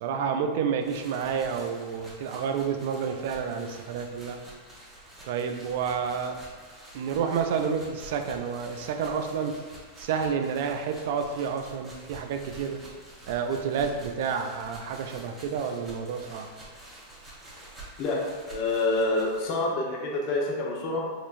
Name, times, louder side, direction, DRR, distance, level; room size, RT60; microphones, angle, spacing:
voice 1, 0.0-4.4 5.3-6.4 6.9-9.5 10.0-12.8 13.3-16.5, right 6 dB, 65° right, 5 dB, 0.3 m, -29 dB
sound 1, 0.8-19.5, right 2 dB, 10° right, 1.1 m, -48 dB
voice 2, 18.0-21.0, left 2 dB, 50° left, -3 dB, 0.9 m, -27 dB
4.2 x 2.6 x 2.5 m, 1.5 s
hypercardioid pair, 105°, 0 cm